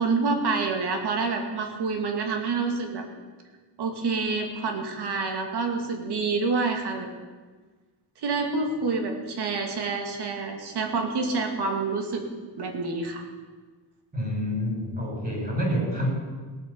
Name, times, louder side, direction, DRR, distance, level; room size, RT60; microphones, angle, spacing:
voice 1, 0.0-3.0 3.8-7.1 8.2-12.2 12.6-13.2, right 4 dB, 70° right, 3 dB, 2.5 m, -27 dB
voice 2, 14.1-16.1, equal, 25° right, -2 dB, 6.0 m, -28 dB
17.5 x 9.2 x 7.1 m, 1.4 s
cardioid pair, 130°, 41 cm